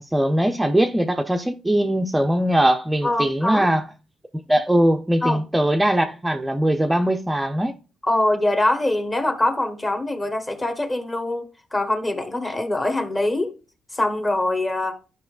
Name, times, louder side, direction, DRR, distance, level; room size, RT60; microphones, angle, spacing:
voice 1, 0.0-3.8 4.5-7.7, right 1 dB, 10° right, 0.5 m, -20 dB
voice 2, 3.0-3.7 5.2-5.4 8.0-13.5 13.9-15.0, left 1 dB, 25° left, 1.2 m, -23 dB
11.5 x 5.4 x 2.4 m
cardioid pair, 90°, 0 cm